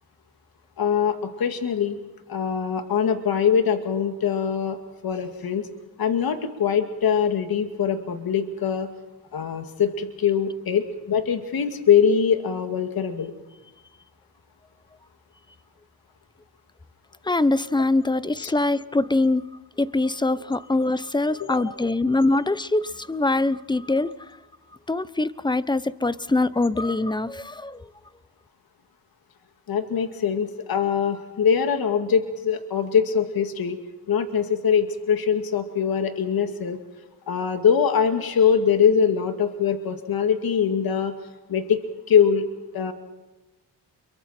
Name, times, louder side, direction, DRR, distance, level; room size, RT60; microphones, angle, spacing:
voice 1, 0.8-2.0 2.3-4.8 5.0-5.7 6.0-8.9 9.3-13.3 18.4-18.5 21.4-21.6 29.7-33.8 34.1-36.8 37.3-41.1 41.5-41.8 42.1-42.5 42.7-42.9, left 7 dB, 55° left, 6 dB, 2.3 m, -22 dB
voice 2, 17.2-24.1 24.9-27.9, left 2 dB, 10° left, 16 dB, 0.9 m, -23 dB
29.0 x 23.5 x 4.5 m, 1.1 s
cardioid pair, 85°, 42 cm